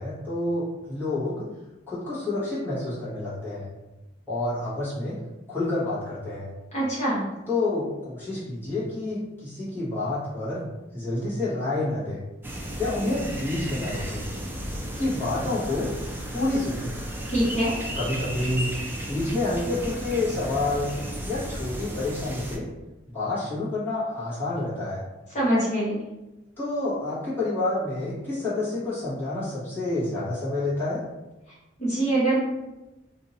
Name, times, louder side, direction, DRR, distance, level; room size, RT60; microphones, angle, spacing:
voice 1, 0.0-1.5 1.9-3.7 4.3-5.2 5.5-6.5 7.5-10.7 10.9-12.2 12.8-14.2 15.0-15.9 16.3-16.9 17.9-18.8 19.0-22.6 23.1-25.0 26.6-31.0, left 2 dB, 10° left, -12 dB, 1.3 m, -28 dB
voice 2, 6.7-7.2 17.3-17.8 25.3-26.0 31.8-32.4, right 1 dB, 35° left, -9 dB, 1.3 m, -24 dB
sound 1, 12.4-22.6, equal, 10° right, 0.4 m, -34 dB
2.8 x 2.7 x 4.0 m, 1.0 s
head